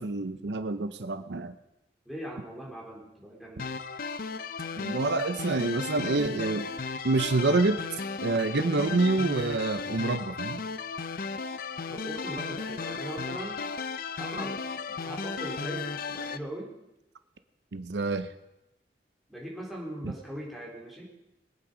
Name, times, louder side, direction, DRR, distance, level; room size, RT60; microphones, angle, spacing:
voice 1, 0.0-1.5 4.8-6.7 7.0-7.8 8.2-10.6 17.7-18.3 20.0-20.1, right 3 dB, 80° right, 11 dB, 0.7 m, -27 dB
voice 2, 2.1-3.7 11.9-13.6 14.2-14.6 15.0-16.7 19.3-21.0, right 1 dB, ahead, -4 dB, 3.9 m, -40 dB
sound 1, 3.6-16.4, left 5 dB, 55° left, 0.6 m, -35 dB
22.0 x 8.8 x 5.1 m, 0.92 s
head